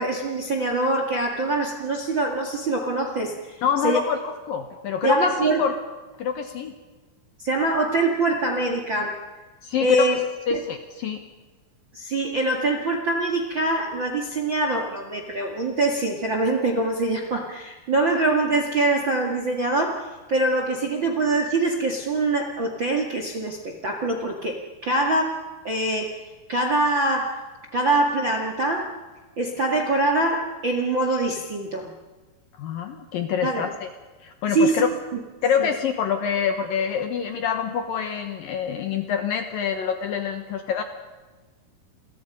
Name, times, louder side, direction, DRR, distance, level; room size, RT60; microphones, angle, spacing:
voice 1, 0.0-3.6 3.8-4.0 5.0-5.6 7.4-9.2 9.8-10.2 10.5-10.6 11.9-26.2 26.5-27.4 27.7-28.9 29.4-31.9 33.4-33.7 34.5-34.8 35.6-35.7, right 2 dB, 45° right, 3 dB, 1.6 m, -24 dB
voice 2, 3.6-5.8 6.2-6.7 9.6-10.2 10.5-11.2 32.6-33.9 34.2-34.9 35.4-40.8, left 7 dB, 70° left, 7 dB, 2.3 m, -26 dB
30.0 x 23.0 x 5.4 m, 1.3 s
omnidirectional pair, 5.3 m